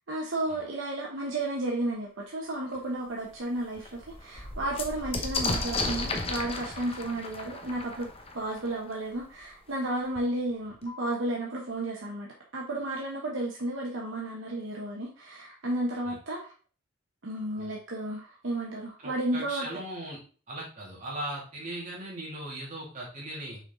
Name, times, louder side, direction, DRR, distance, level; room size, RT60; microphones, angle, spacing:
voice 1, 0.1-8.1 8.3-16.5 17.2-19.7, right 1 dB, 70° right, -2 dB, 1.1 m, -33 dB
sound 1, 2.7-2.8 3.3-3.4 3.6-9.2 10.1-10.2 10.5-11.1, left 2 dB, 30° left, 0.9 m, -34 dB
voice 2, 19.0-20.2 20.5-23.6, right 1 dB, 40° right, -4 dB, 2.7 m, -38 dB
6.0 x 4.0 x 3.9 m, 0.38 s
head